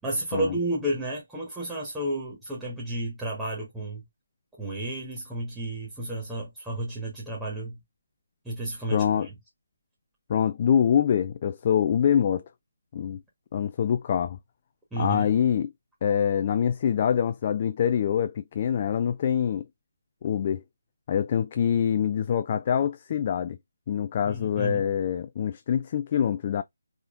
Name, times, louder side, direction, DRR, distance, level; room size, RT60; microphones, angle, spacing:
voice 1, 0.0-4.0 4.6-7.8 8.4-9.3 14.9-15.3 24.2-24.9, right 1 dB, 5° right, 1.3 m, -32 dB
voice 2, 8.9-9.3 10.3-12.4 12.9-13.2 13.5-14.4 15.0-15.7 16.0-19.7 20.2-20.6 21.1-23.6 23.9-26.6, left 8 dB, 35° left, 0.3 m, -25 dB
4.2 x 3.6 x 2.4 m
figure-of-eight pair, 150°, 0 cm